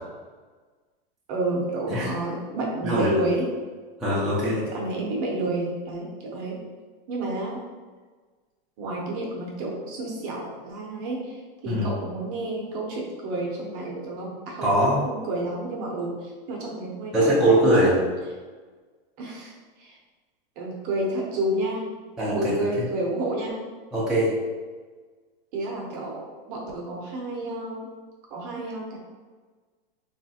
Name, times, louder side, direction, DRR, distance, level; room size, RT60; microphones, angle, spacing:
voice 1, 1.3-3.5 4.7-6.6 7.1-7.6 8.8-11.4 11.6-14.7 15.1-17.9 19.2-19.5 19.8-20.0 20.6-21.8 22.3-23.6 25.5-26.2 26.5-27.9 28.3-29.0, right 2 dB, 40° right, -2 dB, 0.7 m, -30 dB
voice 2, 4.0-4.6 11.7-11.9 14.6-15.0 17.1-18.0 22.2-22.6 23.9-24.3, right 1 dB, ahead, -10 dB, 0.5 m, -21 dB
3.0 x 2.5 x 2.7 m, 1.4 s
supercardioid pair, 140°, 29 cm